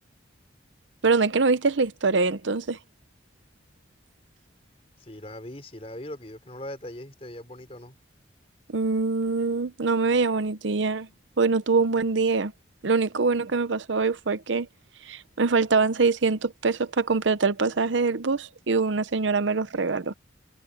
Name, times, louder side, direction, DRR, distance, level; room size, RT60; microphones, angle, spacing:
voice 1, 1.0-2.8 8.7-11.1 11.4-12.5 12.8-14.7 15.0-20.1, right 4 dB, 75° right, 0.8 m, -24 dB
voice 2, 5.0-8.0, left 1 dB, 30° left, 3.7 m, -40 dB
head